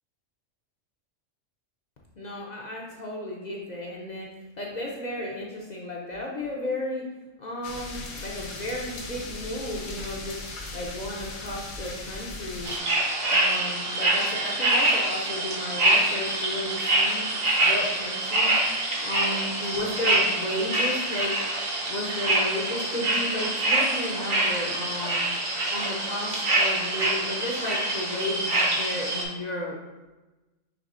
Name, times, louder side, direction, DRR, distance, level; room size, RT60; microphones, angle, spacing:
voice 1, 2.2-7.0 7.4-10.4 10.7-12.7 13.3-17.3 17.6-18.6 19.0-21.4 21.9-25.2 25.7-29.8, left 1 dB, 50° left, -2 dB, 0.5 m, -33 dB
sound 1, 7.6-12.8, left 3 dB, 75° left, 1.1 m, -38 dB
sound 2, 12.6-29.2, right 2 dB, 50° right, 0.9 m, -25 dB
5.9 x 3.3 x 2.5 m, 1.1 s
omnidirectional pair, 1.4 m